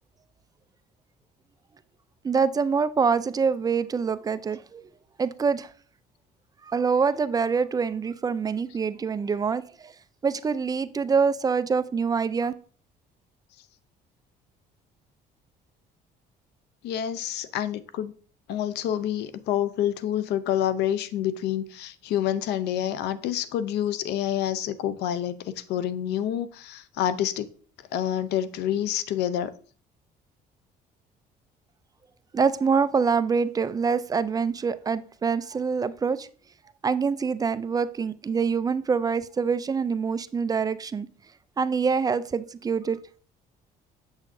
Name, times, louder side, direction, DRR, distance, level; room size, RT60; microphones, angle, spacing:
voice 1, 2.2-4.8 5.2-5.7 6.7-9.9 10.2-12.5 32.3-36.3 36.8-41.1 41.6-43.0, right 5 dB, 20° right, 0.3 m, -25 dB
voice 2, 16.8-18.1 18.5-27.5 27.9-29.5, left 10 dB, 80° left, 0.6 m, -28 dB
7.2 x 6.4 x 2.6 m
cardioid pair, 110°, 17 cm